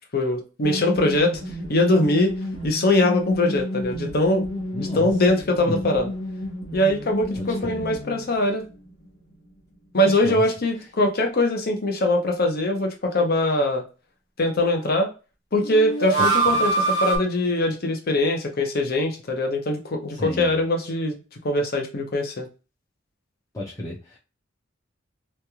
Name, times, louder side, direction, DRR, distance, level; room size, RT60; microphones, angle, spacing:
voice 1, 0.1-1.4 1.7-2.3 2.6-4.4 4.8-6.1 6.7-8.6 9.9-13.8 14.4-15.1 15.5-21.2 21.4-22.5, left 1 dB, 50° left, 3 dB, 0.7 m, -22 dB
sound 1, 0.6-8.4 8.7-8.8 15.6-17.2, right 2 dB, 70° left, 1.0 m, -27 dB
voice 2, 4.7-5.1 5.7-5.8 7.4-7.8 9.9-10.4 10.8-10.9 16.2-16.7 20.1-20.5 23.5-24.2, left 1 dB, 15° left, -7 dB, 0.6 m, -33 dB
3.2 x 2.3 x 2.8 m, 0.33 s
head